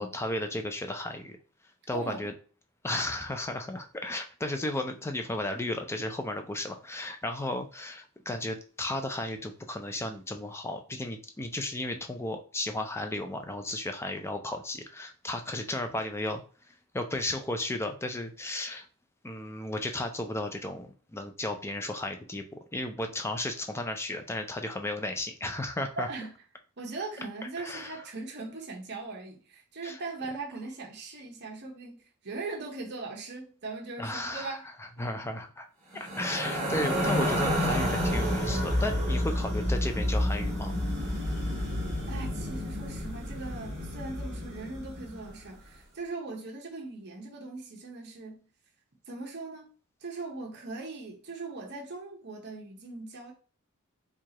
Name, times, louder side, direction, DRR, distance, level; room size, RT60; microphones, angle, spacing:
voice 1, 0.0-1.4 1.9-2.3 2.8-16.4 16.9-18.9 19.2-26.1 27.6-28.0 29.8-30.0 34.0-35.7 35.9-40.7, left 1 dB, 10° left, 0.4 m, -34 dB
voice 2, 1.9-2.3 26.0-26.3 26.8-34.7 35.0-35.2 35.9-36.3 42.1-48.5 49.1-49.7 50.0-53.3, right 3 dB, 50° right, 0.9 m, -40 dB
sound 1, 36.0-45.3, equal, 35° right, 1.3 m, -30 dB
4.6 x 2.4 x 2.9 m
head